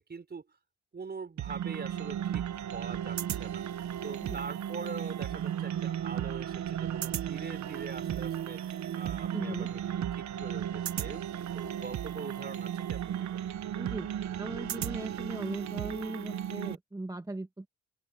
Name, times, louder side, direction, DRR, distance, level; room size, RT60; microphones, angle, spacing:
voice 1, 0.1-0.5 0.9-3.6 4.0-9.8 10.1-13.5, right 5 dB, 35° right, 5.6 m, -43 dB
sound 1, 1.4-16.8, right 10 dB, 70° right, 1.4 m, -35 dB
voice 2, 9.3-9.7 13.8-14.1 14.4-17.7, right 2 dB, 10° right, 2.3 m, -38 dB
open air
cardioid pair, 90°, 30 cm